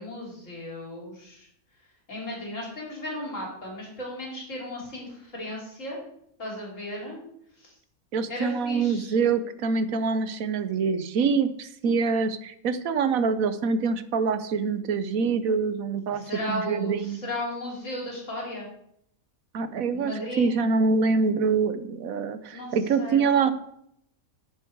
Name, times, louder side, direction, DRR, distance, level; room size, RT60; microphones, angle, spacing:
voice 1, 0.0-1.5 2.1-6.0 6.4-7.2 7.6-7.7 8.3-9.2 16.1-18.7 19.9-20.5 22.5-23.3, left 1 dB, 60° left, -3 dB, 4.0 m, -35 dB
voice 2, 8.1-17.2 19.5-20.1 20.4-23.5, right 5 dB, 75° right, 12 dB, 1.3 m, -25 dB
10.5 x 9.2 x 4.6 m, 0.71 s
omnidirectional pair, 1.5 m